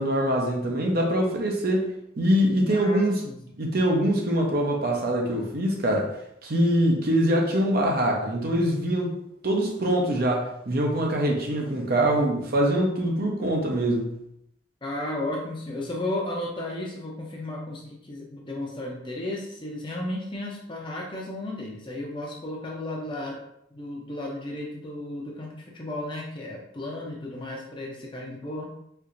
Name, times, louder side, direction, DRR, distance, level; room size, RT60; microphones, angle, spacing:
voice 1, 0.0-1.9 2.2-3.2 3.6-6.1 6.4-9.1 9.4-14.1, right 1 dB, 50° right, 0 dB, 0.7 m, -23 dB
voice 2, 2.7-3.6 14.8-23.4 23.7-28.7, left 1 dB, 25° left, -2 dB, 0.7 m, -34 dB
4.4 x 2.7 x 2.5 m, 0.76 s
head